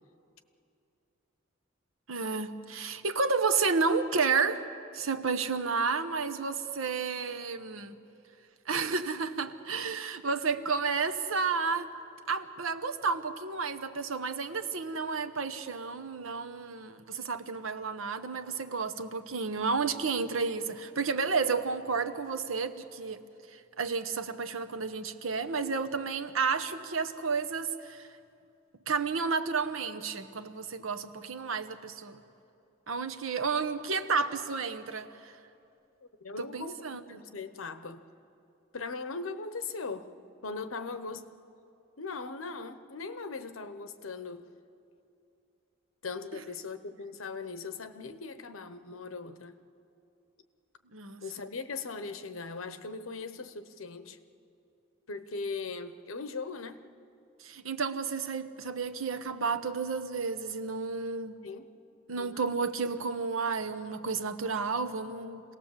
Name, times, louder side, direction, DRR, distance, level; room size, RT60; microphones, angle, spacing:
voice 1, 2.1-4.6 4.9-8.0 8.7-11.9 12.3-23.2 23.5-28.1 28.9-32.2 32.9-35.4 36.4-37.0 50.9-51.2 57.4-61.4 62.1-65.4, right 4 dB, 85° right, 9 dB, 1.0 m, -31 dB
voice 2, 36.0-36.8 37.1-38.0 38.7-40.1 40.4-41.3 42.0-44.5 46.0-49.6 51.2-54.2 55.1-56.8 61.4-61.7 62.2-62.5, left 4 dB, 90° left, 11 dB, 1.0 m, -39 dB
26.5 x 18.0 x 7.3 m, 2.7 s
head